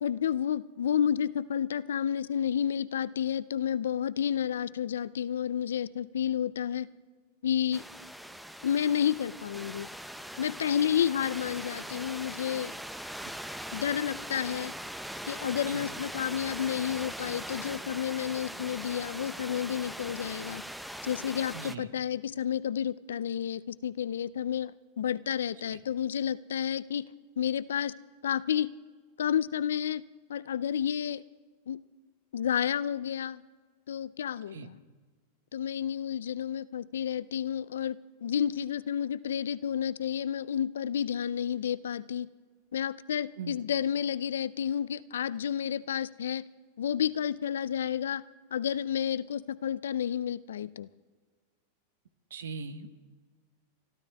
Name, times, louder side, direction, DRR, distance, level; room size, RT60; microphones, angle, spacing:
voice 1, 0.0-6.9 7.4-7.8 8.6-9.9 10.4-12.7 13.7-14.7 15.3-20.6 21.0-27.1 27.4-27.9 28.2-28.7 29.2-30.0 30.3-31.2 31.7-31.8 32.3-33.4 33.9-34.8 35.5-42.3 42.7-46.4 46.8-48.2 48.5-50.9, left 9 dB, 85° left, 18 dB, 0.4 m, -30 dB
sound 1, 7.7-21.7, equal, ahead, 0.7 m, -41 dB
voice 2, 21.5-21.9 25.6-25.8 34.5-34.7 43.4-43.6 52.3-52.9, right 5 dB, 85° right, 11 dB, 1.1 m, -40 dB
27.0 x 12.5 x 3.5 m, 1.5 s
hypercardioid pair, 110°, 0 cm